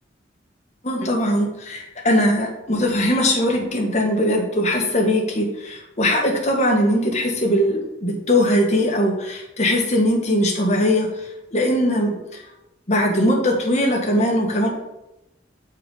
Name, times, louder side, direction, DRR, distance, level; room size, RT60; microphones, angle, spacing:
voice 1, 0.8-11.1 11.5-12.4 12.9-14.7, left 1 dB, 40° left, 0 dB, 1.6 m, -20 dB
7.3 x 4.6 x 5.4 m, 0.90 s
head